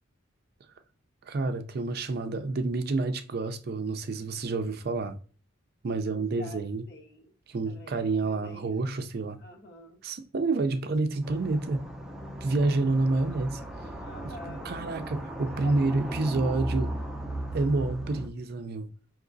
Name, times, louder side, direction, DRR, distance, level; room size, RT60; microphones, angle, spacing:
voice 1, 1.2-5.2 5.8-6.8 7.5-9.4 10.0-11.8 12.4-13.6 14.2-16.9 17.5-18.9, right 3 dB, 50° right, 0.4 m, -28 dB
voice 2, 6.1-7.3 7.6-9.0 9.4-10.0 14.0-14.7 15.4-16.5, equal, 55° left, 1.0 m, -48 dB
sound 1, 11.2-18.3, right 1 dB, 5° right, 0.6 m, -37 dB
4.9 x 2.9 x 2.6 m
head